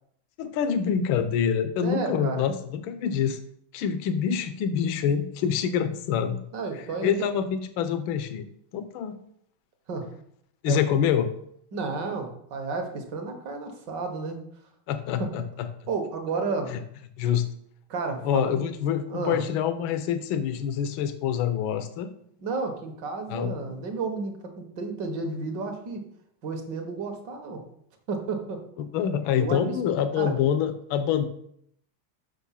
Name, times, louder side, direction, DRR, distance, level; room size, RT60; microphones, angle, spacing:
voice 1, 0.4-3.4 3.7-6.4 7.0-8.4 8.7-9.1 10.6-11.3 14.9-15.4 16.7-16.8 17.2-17.4 18.2-22.1 23.3-23.5 28.8-31.3, left 8 dB, 70° left, 10 dB, 1.5 m, -26 dB
voice 2, 1.8-2.4 6.5-7.3 9.9-10.1 10.7-10.8 11.7-14.4 15.2-15.3 15.9-16.7 17.9-18.7 19.1-19.4 22.4-26.0 26.4-27.6 28.1-28.6 29.4-29.8 30.2-30.3, right 4 dB, 60° right, 5 dB, 1.7 m, -32 dB
6.1 x 6.0 x 5.7 m, 0.70 s
omnidirectional pair, 2.4 m